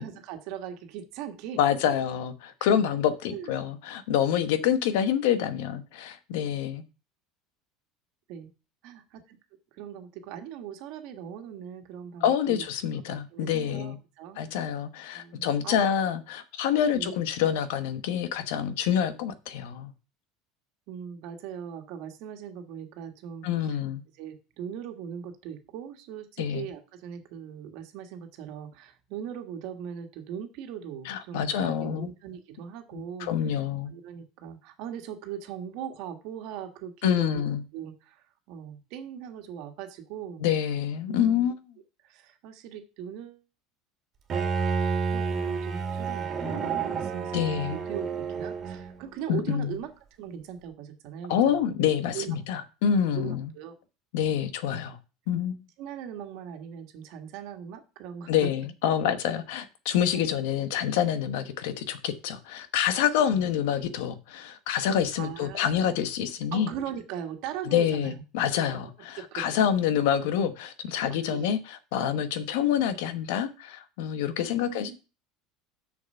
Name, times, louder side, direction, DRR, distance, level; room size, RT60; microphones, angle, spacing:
voice 1, 0.0-1.6 3.3-3.6 8.3-8.5 8.8-9.4 9.7-12.7 13.1-14.7 15.1-15.9 16.9-17.1 20.9-23.5 24.2-33.3 33.9-37.5 37.7-40.4 41.1-41.5 42.0-43.4 45.1-49.9 50.2-51.6 52.1-52.4 53.1-53.8 55.8-58.5 60.1-60.3 63.2-63.5 65.2-66.1 66.5-68.2 69.2-69.5 71.1-71.5 71.9-72.2 74.5-75.0, right 9 dB, 60° right, 1.6 m, -40 dB
voice 2, 1.6-6.8 12.2-14.0 14.4-19.9 23.4-24.0 26.4-26.7 31.0-32.1 32.9-33.9 37.0-37.6 40.4-41.5 47.3-47.8 49.3-49.8 51.3-53.5 54.1-55.0 55.3-55.6 58.3-66.7 67.7-75.0, left 9 dB, 75° left, 1.1 m, -27 dB
Bowed string instrument, 44.3-49.1, right 5 dB, 30° right, 2.2 m, -30 dB
6.8 x 6.4 x 5.6 m
cardioid pair, 155°, 0 cm